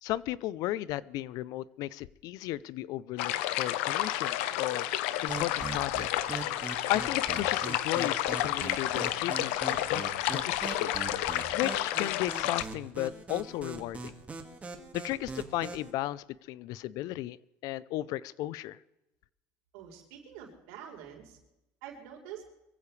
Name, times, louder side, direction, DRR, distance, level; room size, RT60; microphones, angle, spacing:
voice 1, 0.0-4.9 5.2-6.3 6.9-10.9 11.5-14.1 14.9-17.4 17.6-18.8, left 15 dB, 65° left, 20 dB, 0.6 m, -35 dB
sound 1, 3.2-12.6, left 13 dB, 85° left, 0.9 m, -31 dB
sound 2, 5.3-15.9, right 3 dB, 20° right, 2.0 m, -41 dB
voice 2, 19.7-21.4 21.8-22.5, right 9 dB, 90° right, 0 dB, 4.2 m, -46 dB
23.0 x 15.5 x 3.3 m, 0.92 s
cardioid pair, 125°, 7 cm